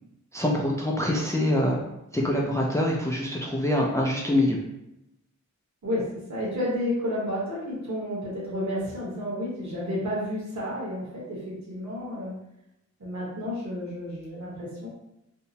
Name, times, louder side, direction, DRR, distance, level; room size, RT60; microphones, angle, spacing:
voice 1, 0.3-1.8 2.1-4.6, left 1 dB, 10° left, -1 dB, 0.3 m, -25 dB
voice 2, 6.3-12.3 13.0-14.9, left 1 dB, 70° right, -6 dB, 1.2 m, -31 dB
2.7 x 2.0 x 2.8 m, 0.87 s
wide cardioid pair, 110°, 30 cm